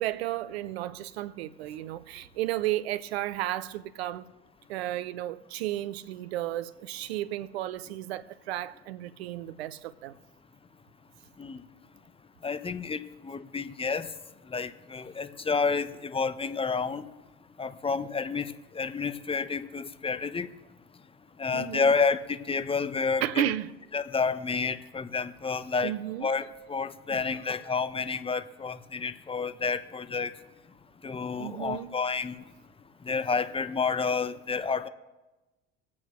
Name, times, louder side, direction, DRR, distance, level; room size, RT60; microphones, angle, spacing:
voice 1, 0.0-4.3 4.7-10.2 21.5-21.9 23.2-23.7 25.8-26.3 31.4-31.9, right 13 dB, 80° right, 0.7 m, -33 dB
voice 2, 12.4-14.1 14.5-17.1 17.6-20.5 21.4-23.5 23.9-25.9 26.2-30.3 31.0-32.3 33.0-34.9, left 5 dB, 15° left, 0.9 m, -30 dB
23.5 x 8.5 x 3.2 m
hypercardioid pair, 70°, 32 cm